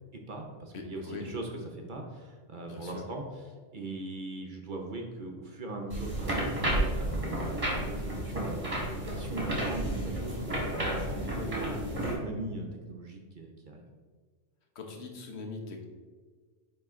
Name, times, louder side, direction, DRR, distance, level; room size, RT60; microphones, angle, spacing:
voice 1, 0.1-3.2 3.7-6.5 6.9-10.4 10.8-13.8, right 2 dB, 50° right, 1 dB, 0.7 m, -40 dB
voice 2, 0.7-1.3 2.7-3.0 14.7-15.9, left 4 dB, 65° left, 2 dB, 1.1 m, -41 dB
sound 1, 5.9-12.1, right 1 dB, 30° right, 1.6 m, -32 dB
9.0 x 3.1 x 3.6 m, 1.5 s
omnidirectional pair, 1.2 m